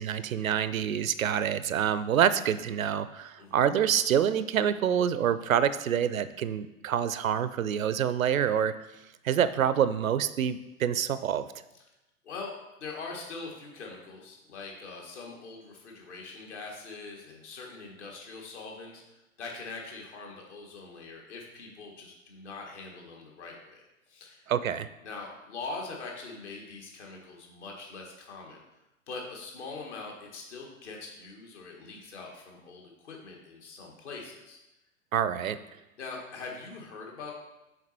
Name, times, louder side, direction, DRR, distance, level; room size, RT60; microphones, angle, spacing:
voice 1, 0.0-8.7 9.2-11.5 24.5-24.9 35.1-35.6, right 9 dB, 75° right, 14 dB, 0.5 m, -27 dB
voice 2, 12.8-24.5 25.0-28.6 29.1-34.6 36.0-37.3, left 3 dB, 55° left, 0 dB, 1.8 m, -42 dB
6.8 x 4.0 x 4.4 m, 0.95 s
figure-of-eight pair, 105°, 41 cm